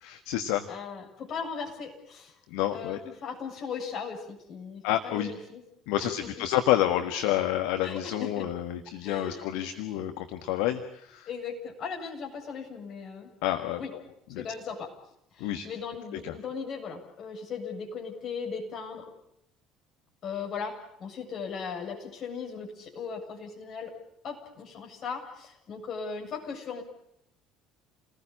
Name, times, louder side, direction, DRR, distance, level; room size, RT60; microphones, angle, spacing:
voice 1, 0.0-0.6 2.5-3.0 4.8-5.3 5.9-11.3 13.4-13.8 14.3-14.4 15.4-15.7 16.2-16.3, left 12 dB, 60° left, 7 dB, 1.5 m, -29 dB
voice 2, 0.7-2.3 2.7-5.6 6.0-6.3 7.8-8.5 9.0-9.5 11.3-13.3 13.8-13.9 14.4-14.9 15.3-19.1 20.2-23.9 24.2-26.8, left 5 dB, 45° left, 2 dB, 7.6 m, -38 dB
29.0 x 20.0 x 8.7 m, 0.80 s
figure-of-eight pair, 60°, 0 cm